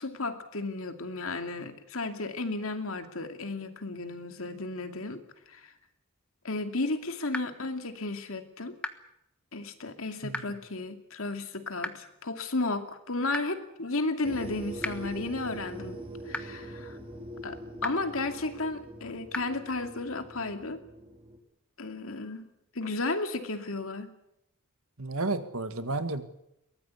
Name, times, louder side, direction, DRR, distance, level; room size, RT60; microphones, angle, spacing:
voice 1, 0.0-5.2 5.5-5.7 6.4-8.7 9.5-16.0 16.3-17.0 17.4-20.8 21.8-22.5 22.7-24.1, left 2 dB, 65° left, 7 dB, 2.5 m, -33 dB
sound 1, 7.3-7.4 8.8-8.9 10.3-10.4 11.8-11.9 13.3-13.4 14.8-14.9 16.3-16.4 17.8-17.9 19.3-19.4, left 1 dB, 5° left, 1.2 m, -32 dB
sound 2, 14.2-21.4, equal, 25° right, 4.1 m, -43 dB
voice 2, 25.0-26.2, right 2 dB, 70° right, 10 dB, 1.9 m, -32 dB
23.0 x 18.5 x 8.4 m, 0.81 s
head